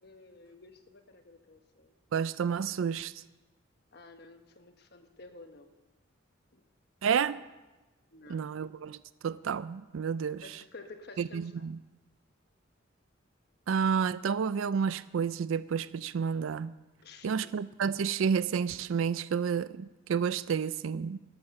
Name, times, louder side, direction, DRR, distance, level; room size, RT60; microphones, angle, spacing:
voice 1, 0.0-1.9 3.9-5.7 6.5-6.6 7.3-7.4 8.1-8.5 10.4-11.6 17.0-17.5, left 3 dB, 55° left, 1.2 m, -52 dB
voice 2, 2.1-3.2 7.0-7.4 8.3-9.0 9.2-10.6 11.2-11.8 13.7-16.7 17.2-21.2, right 6 dB, 85° right, 0.4 m, -30 dB
12.5 x 10.5 x 6.6 m
head